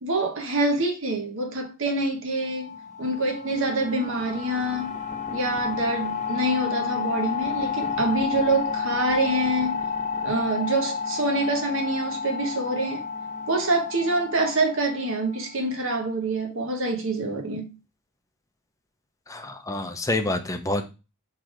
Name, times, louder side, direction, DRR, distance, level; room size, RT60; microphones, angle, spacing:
voice 1, 0.0-4.9 5.3-9.8 10.2-13.0 13.5-17.8, right 2 dB, 60° right, 1.3 m, -26 dB
sound 1, 2.4-15.8, left 6 dB, 35° left, 1.1 m, -31 dB
voice 2, 19.3-20.8, left 2 dB, 15° left, 0.8 m, -27 dB
6.1 x 3.4 x 4.9 m
head